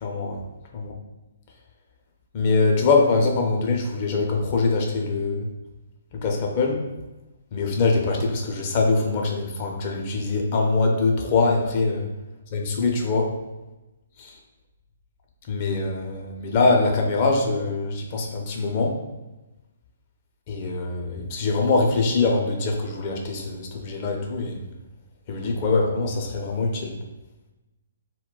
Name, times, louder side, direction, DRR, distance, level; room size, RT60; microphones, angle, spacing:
voice 1, 0.0-0.4 0.7-0.9 2.3-5.5 6.2-6.8 7.5-12.0 12.5-13.3 14.2-14.3 15.5-18.9 20.5-24.6 25.3-26.9, left 3 dB, 40° left, 1 dB, 0.5 m, -23 dB
2.1 x 2.1 x 3.8 m, 1.0 s
figure-of-eight pair, 130°, 0 cm